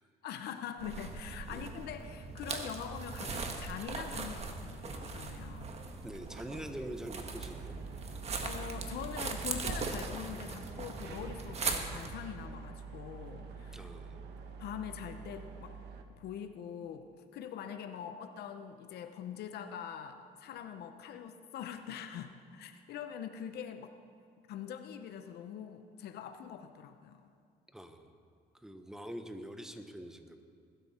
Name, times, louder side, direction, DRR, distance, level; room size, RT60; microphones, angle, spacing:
voice 1, 0.2-5.8 8.4-13.9 14.6-15.8 16.2-17.1 17.3-24.0 24.5-27.3, left 8 dB, 70° left, 8 dB, 0.9 m, -43 dB
sound 1, 0.8-12.2, right 4 dB, 40° right, 1.6 m, -40 dB
voice 2, 6.0-7.7 13.7-14.2 27.7-28.2 28.5-30.4, right 1 dB, 5° right, 7 dB, 1.1 m, -44 dB
sound 2, 7.3-16.0, right 5 dB, 80° right, 1.3 m, -46 dB
20.5 x 12.5 x 4.4 m, 2.3 s
cardioid pair, 110°, 17 cm